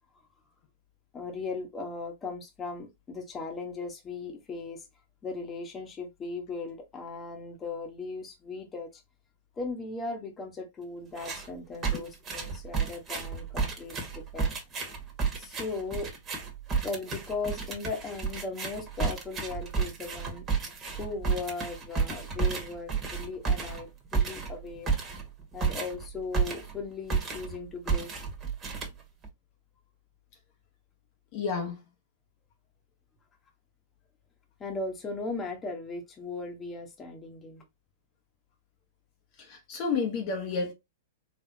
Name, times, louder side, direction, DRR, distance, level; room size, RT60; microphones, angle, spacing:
voice 1, 1.1-4.9 5.2-9.0 9.6-14.5 15.3-16.1 16.8-24.9 25.5-28.2 34.6-37.6, left 3 dB, 20° left, 1.5 m, -38 dB
sound 1, 11.1-11.5 11.8-26.8 27.1-27.6 27.9-29.3, right 5 dB, 25° right, 1.8 m, -31 dB
voice 2, 31.3-31.8 39.4-40.7, left 5 dB, 45° left, 1.2 m, -31 dB
4.2 x 3.5 x 2.9 m
hypercardioid pair, 110°, 0 cm